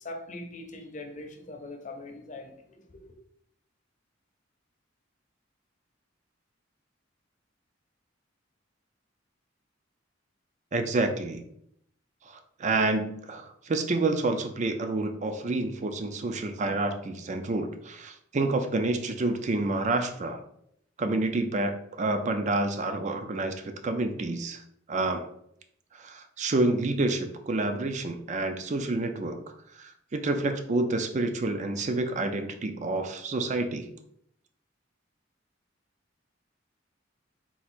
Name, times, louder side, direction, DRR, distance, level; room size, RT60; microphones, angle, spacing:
voice 1, 0.0-2.8, left 2 dB, 40° left, 4 dB, 0.6 m, -41 dB
voice 2, 10.7-11.4 12.3-20.4 21.0-24.6 24.9-25.3 25.9-29.4 29.7-33.9, right 2 dB, 40° right, 7 dB, 0.4 m, -28 dB
4.2 x 2.5 x 4.3 m, 0.71 s
head